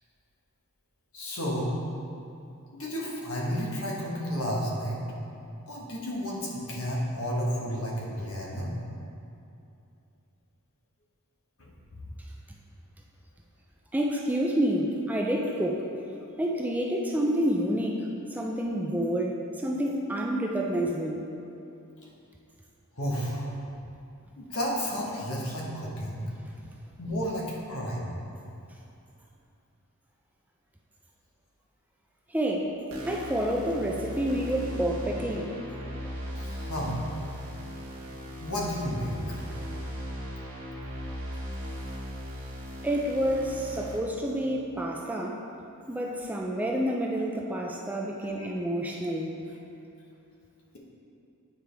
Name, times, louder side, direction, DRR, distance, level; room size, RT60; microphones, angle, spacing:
voice 1, 1.1-1.7 2.8-5.0 5.7-8.7 11.6-12.0 23.0-23.5 24.4-26.2 27.0-28.1 36.3-36.9 38.4-39.1 48.2-48.5, equal, 75° left, -4 dB, 1.3 m, -32 dB
voice 2, 13.9-15.9 16.4-21.2 32.3-32.7 33.1-35.5 42.8-45.4 45.9-49.3, right 1 dB, 5° right, -1 dB, 0.4 m, -28 dB
sound 1, 32.9-44.0, equal, 65° right, 1.1 m, -38 dB
9.0 x 4.9 x 3.4 m, 2.7 s
head